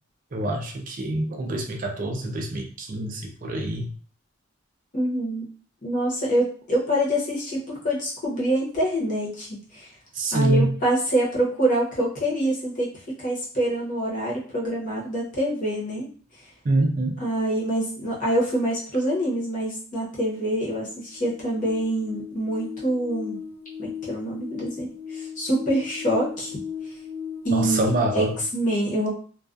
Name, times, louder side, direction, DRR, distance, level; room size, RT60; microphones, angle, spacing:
voice 1, 0.3-3.9 10.1-10.7 16.6-17.2 27.5-28.3, right 2 dB, 40° right, 2 dB, 0.4 m, -25 dB
voice 2, 4.9-5.4 5.8-9.9 10.3-12.9 13.2-16.1 17.2-23.4 23.8-26.5 27.4-28.2 28.5-29.1, right 1 dB, 40° left, -5 dB, 0.8 m, -25 dB
sound 1, 20.3-28.4, left 7 dB, 80° left, 0.4 m, -37 dB
2.3 x 2.2 x 2.5 m, 0.43 s
head